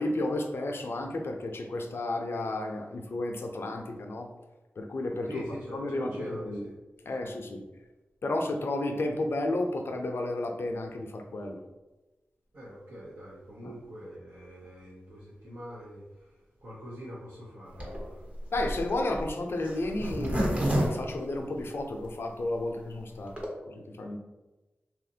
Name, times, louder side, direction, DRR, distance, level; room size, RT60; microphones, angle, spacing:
voice 1, 0.0-4.3 4.8-5.4 5.7-6.6 7.1-7.6 8.2-11.6 13.6-13.7 18.5-23.3 23.7-24.2, left 2 dB, 65° left, 4 dB, 0.4 m, -32 dB
voice 2, 5.3-6.7 7.0-7.1 12.5-18.3, equal, 75° right, -9 dB, 0.8 m, -44 dB
Zipper (clothing), 17.7-22.1 22.5-22.6 22.8-22.9 23.1-23.5, right 1 dB, 30° right, 0.8 m, -30 dB
2.8 x 2.4 x 2.7 m, 1.1 s
cardioid pair, 40°, 4 cm